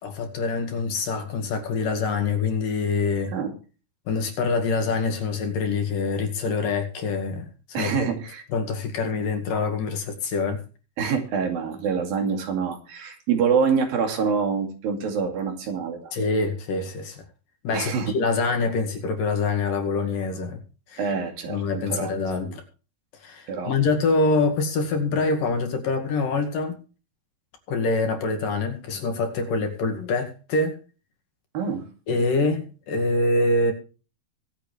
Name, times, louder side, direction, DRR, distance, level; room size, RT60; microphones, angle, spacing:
voice 1, 0.0-3.4 4.1-7.9 8.5-10.6 16.1-17.2 17.6-20.6 20.9-21.1 21.5-22.6 23.2-26.8 27.7-30.8 32.1-33.7, left 3 dB, 65° left, 4 dB, 3.7 m, -25 dB
voice 2, 7.7-8.4 11.0-16.1 17.7-18.1 21.0-22.2 22.4-22.5 23.5-23.7 31.5-31.8, right 6 dB, 70° right, 4 dB, 4.2 m, -26 dB
24.0 x 8.1 x 3.3 m, 0.36 s
omnidirectional pair, 4.4 m